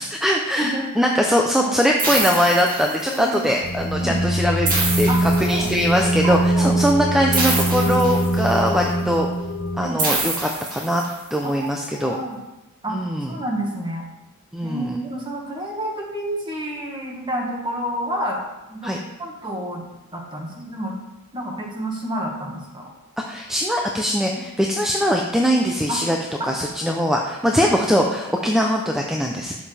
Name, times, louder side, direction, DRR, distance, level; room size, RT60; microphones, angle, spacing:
voice 1, 0.0-9.3 9.8-11.0 11.3-12.2 12.9-13.4 14.5-15.0 18.8-19.0 23.3-26.2 26.4-29.6, equal, ahead, 0 dB, 0.5 m, -21 dB
voice 2, 0.6-1.1 1.6-1.8 3.1-3.4 4.0-4.2 5.1-5.2 5.5-5.7 6.2-6.7 7.8-8.0 9.0-9.1 9.8-10.0 11.4-12.4 12.8-13.0 13.3-14.0 14.6-18.4 18.7-19.8 20.1-20.9 21.3-22.8 24.3-24.4 25.9-26.0 26.4-26.5, right 1 dB, 20° right, -1 dB, 1.7 m, -29 dB
sound 1, 2.0-3.3 4.6-6.0 7.3-8.7 10.0-11.3, right 2 dB, 40° right, 2.2 m, -26 dB
sound 2, 3.6-9.9, right 1 dB, 40° left, 1.0 m, -22 dB
11.5 x 7.3 x 3.4 m, 1.0 s
head